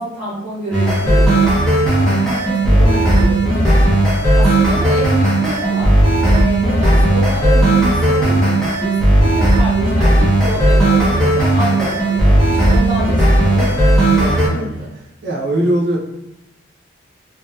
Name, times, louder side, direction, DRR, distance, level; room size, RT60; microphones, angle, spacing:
voice 1, 0.0-1.6 1.9-4.0 4.3-6.0 6.2-9.0 9.2-13.8 14.2-14.8, equal, 15° right, -18 dB, 1.3 m, -27 dB
sound 1, 0.7-14.5, right 1 dB, 5° left, 0.5 m, -14 dB
voice 2, 14.1-14.9 15.2-16.0, right 1 dB, 60° right, -4 dB, 0.6 m, -20 dB
2.7 x 2.1 x 2.3 m, 0.89 s
head